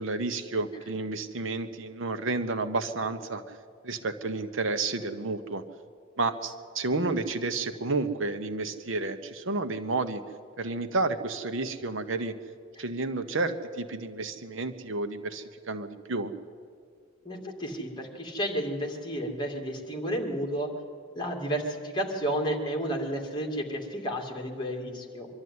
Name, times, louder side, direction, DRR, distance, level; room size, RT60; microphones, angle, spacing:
voice 1, 0.0-3.4 3.8-5.6 6.2-10.2 10.6-12.4 12.8-16.3, right 3 dB, 65° right, 9 dB, 1.0 m, -31 dB
voice 2, 17.2-20.7 21.1-25.3, equal, 20° left, 1 dB, 2.5 m, -32 dB
23.5 x 12.5 x 9.6 m, 2.2 s
head